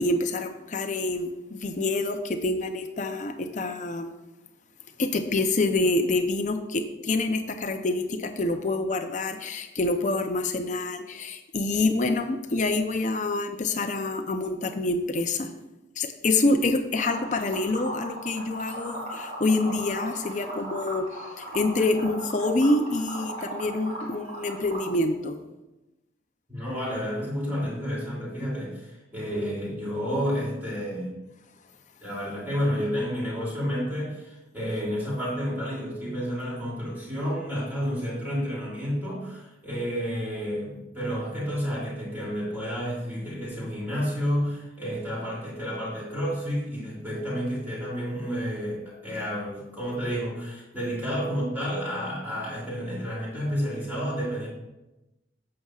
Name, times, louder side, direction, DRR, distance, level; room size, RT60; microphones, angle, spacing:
voice 1, 0.0-4.1 5.0-15.5 16.0-25.4, left 2 dB, 40° left, 7 dB, 0.6 m, -26 dB
Liquid, 17.0-24.9, right 1 dB, 35° right, 2.4 m, -37 dB
voice 2, 26.5-31.2 32.0-54.5, equal, 10° right, -6 dB, 2.7 m, -30 dB
11.0 x 7.6 x 2.4 m, 1.0 s
head